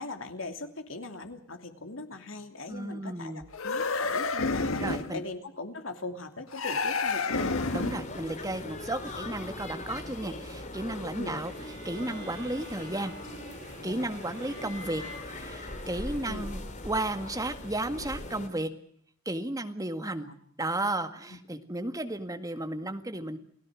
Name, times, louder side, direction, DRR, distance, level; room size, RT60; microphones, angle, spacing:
voice 1, 0.0-7.9 11.2-11.3 14.6-14.7 16.3-16.5 20.0-20.3 21.3-21.4, left 2 dB, 70° left, 7 dB, 2.9 m, -40 dB
voice 2, 2.7-3.5 4.8-5.2 7.7-13.1 13.8-15.0 15.4-18.7 19.3-20.3 20.6-23.4, right 1 dB, 15° right, 8 dB, 1.9 m, -33 dB
sound 1, 3.5-5.2 6.5-8.1, left 3 dB, 85° left, 1.6 m, -29 dB
sound 2, 7.3-18.5, left 2 dB, 35° left, 3.1 m, -40 dB
sound 3, 11.4-16.7, right 1 dB, 65° right, 5.6 m, -49 dB
29.5 x 17.5 x 6.4 m, 0.65 s
head